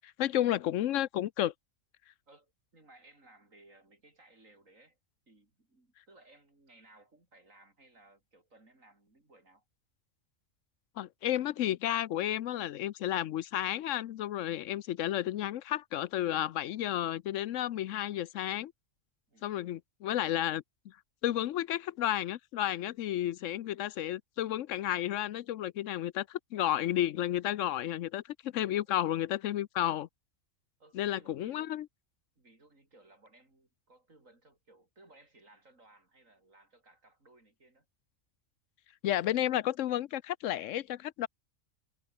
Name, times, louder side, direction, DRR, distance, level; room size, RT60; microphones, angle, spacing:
voice 1, 0.2-1.5 11.0-18.7 19.4-20.6 21.2-30.1 30.9-31.9 39.0-41.3, left 12 dB, 75° left, 1.0 m, -32 dB
voice 2, 2.3-5.0 5.3-9.6 14.6-14.8 19.3-19.5 28.8-29.0 30.8-31.8 32.4-37.9, right 2 dB, 80° right, 6.1 m, -61 dB
omnidirectional pair, 1.3 m